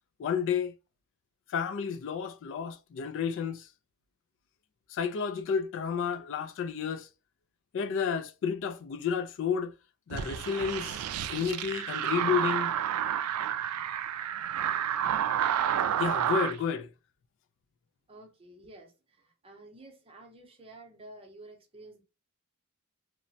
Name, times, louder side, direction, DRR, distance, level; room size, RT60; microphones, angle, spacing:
voice 1, 0.2-0.7 1.5-3.7 4.9-7.1 7.7-9.7 10.1-11.0 11.3-12.7 16.0-16.9, left 7 dB, 60° left, 0.3 m, -31 dB
sound 1, 10.1-16.6, right 9 dB, 85° right, 0.3 m, -30 dB
voice 2, 18.1-22.0, right 2 dB, 25° right, 0.7 m, -51 dB
2.9 x 2.1 x 2.6 m
head